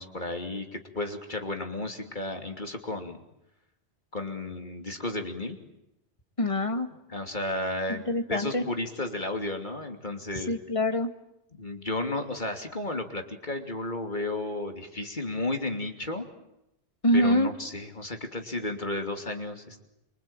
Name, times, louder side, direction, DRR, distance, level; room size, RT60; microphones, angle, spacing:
voice 1, 0.0-3.2 4.1-5.6 7.1-8.0 8.3-10.5 11.5-16.2 17.1-19.9, left 2 dB, 45° left, 5 dB, 3.0 m, -33 dB
voice 2, 6.4-6.9 7.9-8.6 10.5-11.1 17.0-17.5, left 1 dB, 30° left, 7 dB, 2.1 m, -25 dB
27.0 x 24.0 x 9.0 m, 0.87 s
omnidirectional pair, 1.1 m